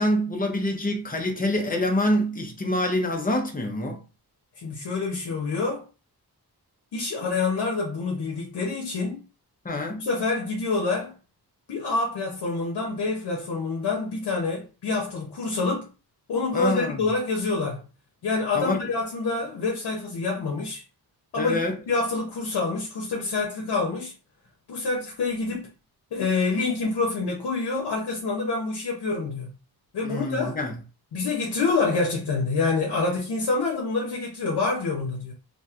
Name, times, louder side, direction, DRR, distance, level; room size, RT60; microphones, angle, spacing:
voice 1, 0.0-4.0 9.6-10.0 16.5-17.1 18.5-18.8 21.4-21.8 30.0-30.7, left 1 dB, 20° left, 0.7 m, -26 dB
voice 2, 4.6-5.9 6.9-9.2 9.9-11.1 11.7-15.9 16.3-17.8 18.2-20.8 21.3-21.6 21.9-24.1 24.7-25.7 26.1-29.5 29.9-30.6 31.1-35.3, left 3 dB, 80° left, 0.8 m, -27 dB
3.0 x 2.6 x 2.4 m
wide cardioid pair, 140°, 39 cm